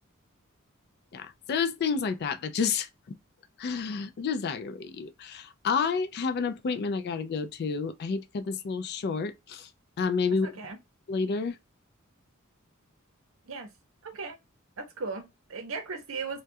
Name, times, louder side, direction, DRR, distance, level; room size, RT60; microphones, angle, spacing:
voice 1, 1.1-3.2 3.6-9.7 10.0-10.5 11.1-11.6, left 5 dB, 50° left, 0.3 m, -30 dB
voice 2, 10.4-10.8 13.4-13.7 14.0-14.4 14.8-16.4, right 4 dB, 70° right, 0.7 m, -37 dB
2.3 x 2.2 x 2.6 m
head